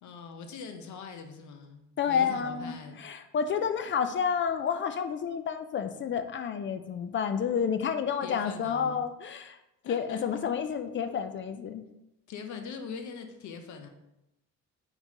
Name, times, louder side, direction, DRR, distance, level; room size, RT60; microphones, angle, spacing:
voice 1, 0.0-3.0 8.2-9.0 9.8-10.2 12.3-13.9, left 5 dB, 70° left, 5 dB, 0.7 m, -42 dB
voice 2, 2.0-9.6 9.9-11.8, left 7 dB, 40° left, 8 dB, 0.4 m, -30 dB
4.5 x 3.8 x 2.8 m, 0.88 s
cardioid pair, 90°, 30 cm